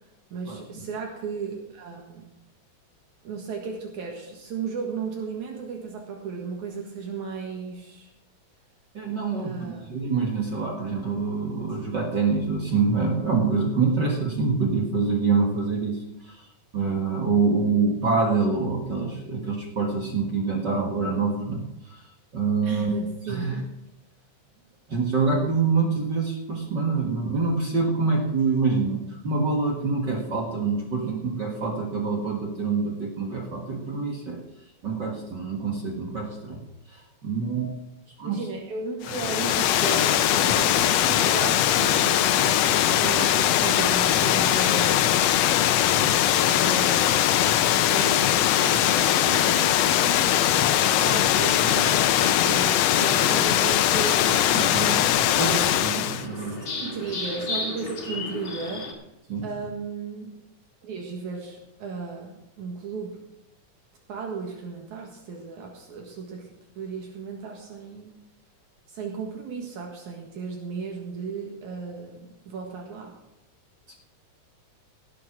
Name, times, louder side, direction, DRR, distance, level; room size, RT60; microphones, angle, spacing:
voice 1, 0.3-2.3 3.2-8.1 9.4-10.0 22.6-23.5 31.0-31.2 38.2-45.2 46.4-50.3 50.6-55.7 56.3-58.9 59.4-60.4 60.8-63.2 64.1-66.5 66.8-68.1 68.9-73.1, right 5 dB, 70° right, 1 dB, 3.1 m, -35 dB
voice 2, 8.9-16.0 16.3-16.4 16.7-22.0 22.3-22.9 23.3-23.6 24.9-34.4 34.8-36.6 36.9-37.8 38.2-38.4 45.9-46.1 54.5-55.0 55.4-56.6 59.3-59.5 73.9-74.0, right 4 dB, 40° right, 1 dB, 1.9 m, -26 dB
Water, 39.0-56.2, left 12 dB, 75° left, 1.6 m, -21 dB
sound 1, 52.6-58.9, left 3 dB, 40° left, 3.2 m, -36 dB
17.5 x 7.8 x 6.0 m, 0.86 s
omnidirectional pair, 3.5 m